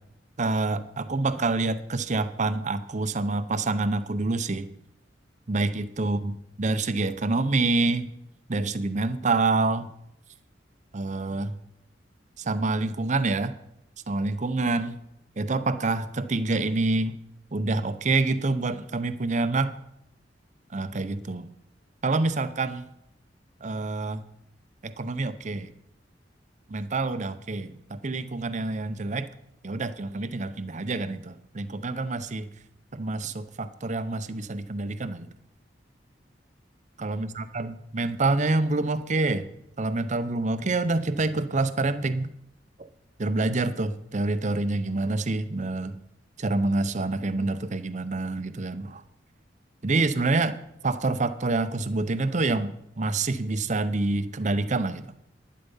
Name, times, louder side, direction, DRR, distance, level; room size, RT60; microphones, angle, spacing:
voice 1, 0.4-4.7 5.5-8.1 8.5-9.9 10.9-11.5 12.4-13.5 14.1-15.0 15.4-17.2 17.5-19.7 20.7-21.5 22.0-22.9 23.6-24.2 24.8-25.7 26.7-29.3 29.6-32.5 32.9-35.3 37.0-39.5 39.8-42.3 43.2-46.0 46.4-49.0 49.8-50.5 50.8-55.0, right 3 dB, 40° right, 12 dB, 0.7 m, -27 dB
11.5 x 10.5 x 5.5 m, 0.79 s
head